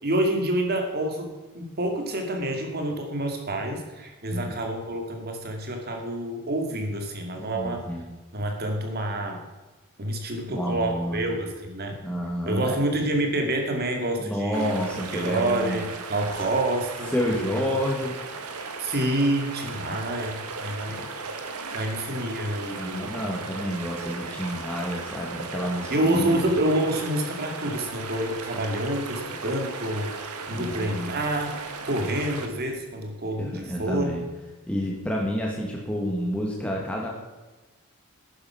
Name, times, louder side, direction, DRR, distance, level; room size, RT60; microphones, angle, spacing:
voice 1, 0.0-7.8 8.3-9.4 10.0-12.0 12.5-14.7 15.1-17.1 17.5-17.6 18.8-21.1 21.7-23.3 25.9-31.5 31.8-34.1, right 1 dB, 45° right, 3 dB, 2.4 m, -28 dB
voice 2, 7.4-8.1 10.5-11.2 12.0-12.8 14.2-15.8 17.1-18.1 20.9-21.1 22.7-26.6 30.5-30.9 33.4-34.2 34.7-37.1, equal, 5° left, -3 dB, 1.9 m, -29 dB
sound 1, 14.5-32.7, right 4 dB, 85° right, 1.6 m, -37 dB
12.0 x 10.0 x 5.8 m, 1.2 s
head